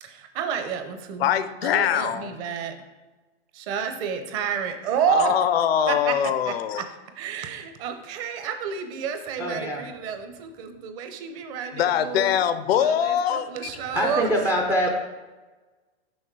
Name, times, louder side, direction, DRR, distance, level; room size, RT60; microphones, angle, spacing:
voice 1, 0.0-1.3 1.6-2.8 3.5-5.3 5.9-6.2 6.5-6.9 7.1-12.4 12.8-14.3, right 7 dB, 35° right, 7 dB, 0.8 m, -30 dB
voice 2, 1.2-2.3 5.1-6.8 11.7-13.5, left 9 dB, 70° left, 12 dB, 0.6 m, -23 dB
voice 3, 9.4-9.8 13.9-14.9, equal, 5° right, 0 dB, 0.4 m, -24 dB
6.4 x 5.8 x 4.6 m, 1.2 s
hypercardioid pair, 145°, 31 cm